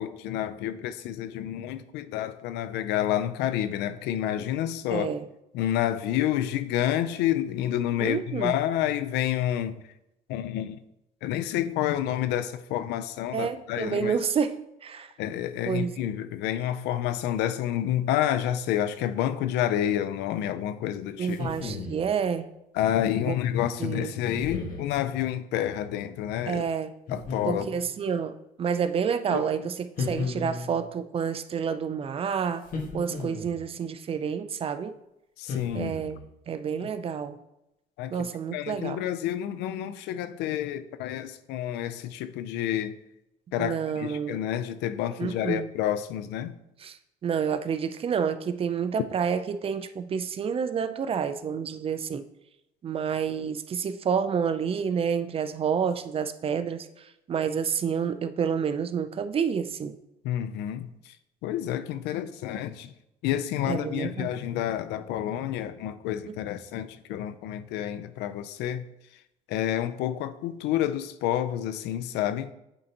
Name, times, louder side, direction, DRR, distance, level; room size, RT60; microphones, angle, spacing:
voice 1, 0.0-5.1 5.5-9.8 10.3-10.8 11.2-14.2 15.2-21.4 22.7-26.6 27.1-27.7 29.3-29.5 35.4-35.9 36.8-36.9 38.0-43.0 43.5-46.6 60.2-61.1 61.4-62.9 63.2-68.8 69.5-72.5, left 11 dB, 90° left, 0.5 m, -29 dB
voice 2, 4.9-5.3 8.0-8.6 13.3-15.1 15.7-16.0 21.2-22.5 23.3-23.4 23.8-24.1 26.5-26.9 27.5-32.7 32.9-34.9 35.7-36.2 36.5-37.4 38.1-39.0 43.6-44.4 45.2-45.7 46.8-52.3 52.8-60.0 63.7-64.3 66.3-66.4, right 7 dB, 35° right, 0.4 m, -29 dB
sound 1, 21.3-22.1 24.3-24.9 27.1-27.9 30.0-30.8 32.6-33.6 35.5-36.2, left 4 dB, 55° left, 1.4 m, -34 dB
8.9 x 3.9 x 2.9 m
cardioid pair, 110°, 17 cm